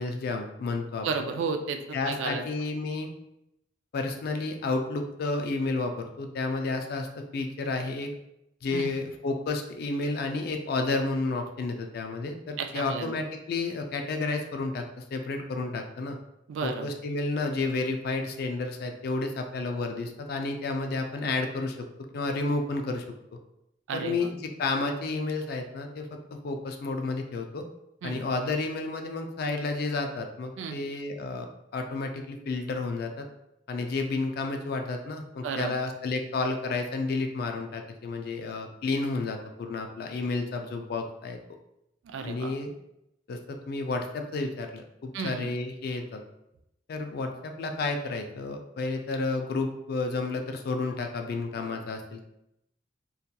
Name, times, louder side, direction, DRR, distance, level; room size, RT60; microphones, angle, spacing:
voice 1, 0.0-1.1 1.9-3.1 3.9-8.1 8.6-16.2 16.6-21.9 22.1-23.0 23.3-23.4 23.9-24.3 24.6-26.1 26.4-27.6 28.0-33.3 33.7-41.4 42.2-42.7 43.3-46.2 46.9-52.2, left 3 dB, 55° left, 4 dB, 0.3 m, -31 dB
voice 2, 1.0-2.4 8.7-8.9 12.6-13.1 16.5-16.9 23.9-24.3 28.0-28.2 30.6-30.8 35.4-35.7 42.1-42.5 45.1-45.5, right 5 dB, 80° right, 6 dB, 0.3 m, -33 dB
2.7 x 2.3 x 2.2 m, 0.83 s
head